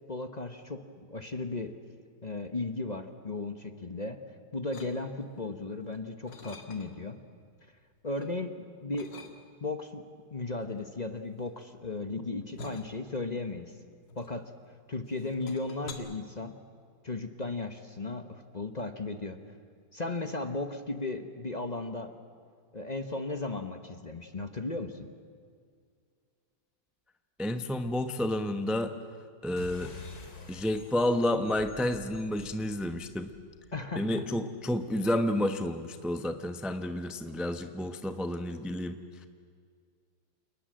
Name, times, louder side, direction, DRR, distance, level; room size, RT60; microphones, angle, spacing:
voice 1, 0.1-1.7 2.2-4.2 4.5-7.2 8.0-9.3 9.6-13.7 14.2-14.5 14.9-16.6 17.0-19.4 19.9-22.1 22.7-25.1 33.7-34.3, left 2 dB, 30° left, 8 dB, 0.9 m, -36 dB
sound 1, 4.7-5.4 5.8-7.1 7.6-8.3 8.9-9.8 10.6-14.7 15.1-15.9, left 3 dB, 75° left, 2.6 m, -49 dB
voice 2, 27.4-28.9 29.4-29.9 30.5-33.3 34.0-39.3, left 1 dB, ahead, 8 dB, 0.5 m, -30 dB
sound 2, 29.6-34.5, left 3 dB, 55° left, 2.8 m, -49 dB
28.5 x 20.0 x 7.7 m, 2.1 s
omnidirectional pair, 2.0 m